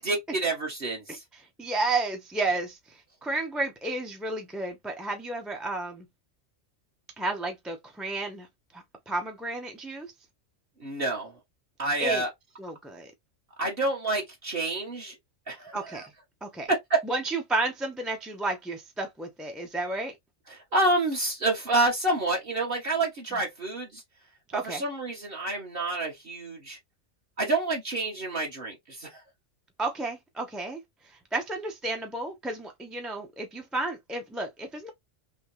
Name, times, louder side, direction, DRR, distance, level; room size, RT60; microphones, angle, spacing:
voice 1, 0.0-1.2 10.8-11.3 11.8-12.3 13.6-15.2 15.5-16.0 16.7-17.0 20.5-24.0 24.6-26.8 27.4-29.2, right 2 dB, 50° right, 1.2 m, -28 dB
voice 2, 1.1-6.1 7.2-8.5 8.7-10.1 12.0-12.2 12.6-13.1 15.7-16.1 16.4-16.7 17.0-20.2 23.3-23.4 24.5-24.8 29.8-30.8 31.1-34.9, right 2 dB, ahead, 0.4 m, -32 dB
3.1 x 2.8 x 3.0 m
omnidirectional pair, 1.3 m